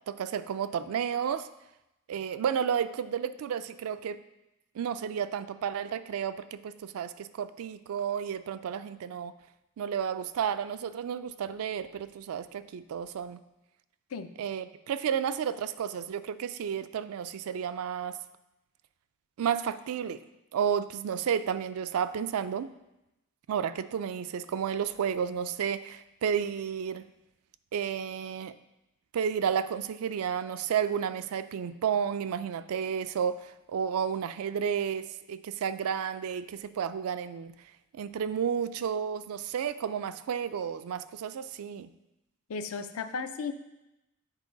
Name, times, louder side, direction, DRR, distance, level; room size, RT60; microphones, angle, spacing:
voice 1, 0.1-1.5 2.1-4.2 4.7-9.3 9.8-13.4 14.4-18.2 19.4-20.2 20.5-22.7 23.5-27.1 27.7-28.5 29.1-37.5 37.9-41.9, right 7 dB, 75° right, 13 dB, 0.3 m, -32 dB
voice 2, 42.5-43.5, left 5 dB, 70° left, 10 dB, 0.5 m, -35 dB
7.3 x 4.7 x 3.9 m, 0.92 s
head